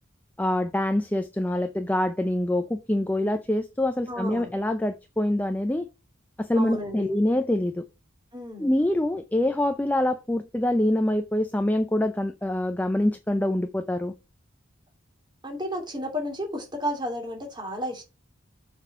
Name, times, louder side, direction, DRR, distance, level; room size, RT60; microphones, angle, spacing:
voice 1, 0.4-5.9 6.4-7.8 8.6-14.1, left 1 dB, 10° left, 0.4 m, -25 dB
voice 2, 4.1-4.5 6.5-7.1 8.3-8.7 15.4-18.0, equal, 20° right, 2.7 m, -32 dB
7.1 x 4.3 x 5.4 m
head